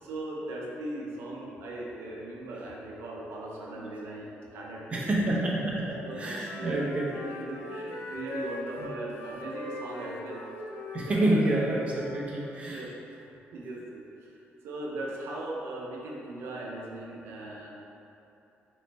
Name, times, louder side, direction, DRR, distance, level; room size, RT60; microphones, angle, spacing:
voice 1, 0.0-5.4 6.0-10.4 11.0-11.5 12.7-12.9 13.5-17.7, right 2 dB, 80° right, -3 dB, 0.6 m, -39 dB
voice 2, 4.9-7.1 8.8-8.9 10.9-12.8, right 1 dB, 30° right, -5 dB, 0.6 m, -28 dB
Wind instrument woodwind instrument, 5.9-12.3, left 2 dB, 70° left, 0.5 m, -41 dB
4.0 x 3.1 x 3.3 m, 2.9 s
cardioid pair, 140°, 4 cm